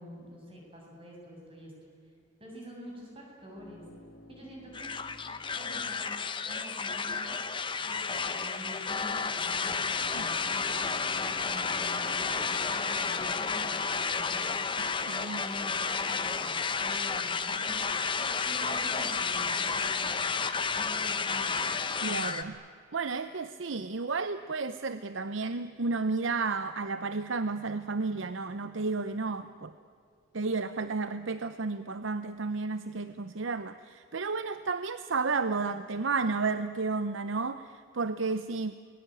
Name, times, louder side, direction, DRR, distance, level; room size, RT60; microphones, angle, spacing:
voice 1, 0.0-1.7 2.4-3.8 4.3-4.9 5.5-6.1 6.5-7.4 7.8-14.6 15.3-16.5 16.8-20.2 20.7-21.8, equal, 25° right, -2 dB, 7.5 m, -47 dB
sound 1, 3.5-6.9 9.9-12.7, equal, 60° left, 2.1 m, -53 dB
sound 2, 4.7-22.4, left 5 dB, 25° left, 1.0 m, -31 dB
voice 2, 14.8-15.4 22.0-22.6 22.9-29.7 30.3-38.7, right 4 dB, 75° right, 12 dB, 0.7 m, -32 dB
29.5 x 21.0 x 9.1 m, 2.3 s
head